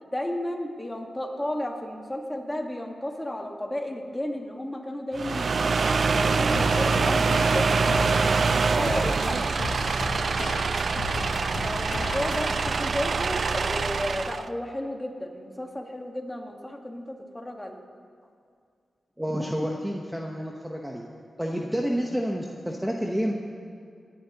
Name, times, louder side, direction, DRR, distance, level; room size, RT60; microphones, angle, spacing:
voice 1, 0.0-5.7 5.9-8.0 8.7-9.4 11.6-17.8, left 1 dB, 15° left, 2 dB, 1.6 m, -33 dB
sound 1, 5.1-14.5, right 4 dB, 60° right, 0.3 m, -25 dB
sound 2, 6.5-12.7, left 4 dB, 90° left, 0.8 m, -36 dB
voice 2, 19.2-21.0 21.4-23.3, equal, 5° right, 0 dB, 1.0 m, -29 dB
24.5 x 10.5 x 3.0 m, 2.3 s
cardioid pair, 80°, 0 cm